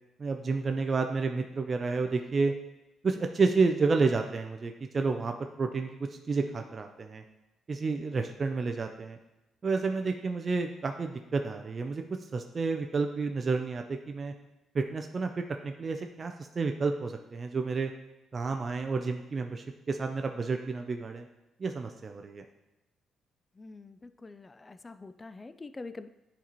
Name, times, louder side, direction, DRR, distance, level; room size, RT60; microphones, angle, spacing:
voice 1, 0.2-2.5 3.0-7.2 7.7-9.2 9.6-12.0 12.3-14.3 14.7-17.9 18.3-21.3 21.6-22.4, right 4 dB, 40° right, 5 dB, 0.4 m, -30 dB
voice 2, 23.6-26.1, left 3 dB, 25° left, 11 dB, 0.3 m, -45 dB
9.8 x 4.1 x 3.0 m, 0.99 s
cardioid pair, 90°, 0 cm